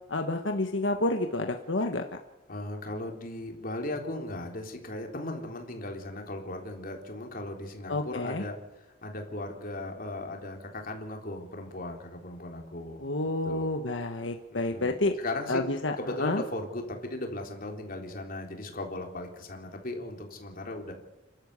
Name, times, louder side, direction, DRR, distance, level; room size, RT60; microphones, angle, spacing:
voice 1, 0.1-2.0 7.9-8.4 13.0-15.1 15.5-16.4, left 2 dB, 80° left, 4 dB, 1.4 m, -29 dB
voice 2, 2.5-13.1 13.4-13.7 14.5-15.6 16.0-20.9, left 1 dB, 50° left, 2 dB, 3.7 m, -37 dB
29.0 x 12.5 x 8.3 m, 1.0 s
head